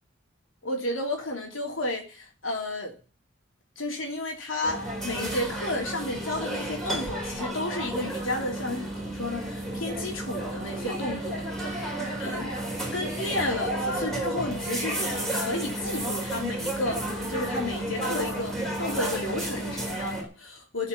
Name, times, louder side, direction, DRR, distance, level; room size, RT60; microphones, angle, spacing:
voice 1, 0.6-3.0 3.8-11.7 12.2-12.5 12.9-20.9, left 1 dB, 85° left, 0 dB, 3.2 m, -32 dB
sound 1, 4.6-20.2, right 1 dB, ahead, 3.9 m, -32 dB
14.5 x 5.7 x 9.4 m, 0.37 s
head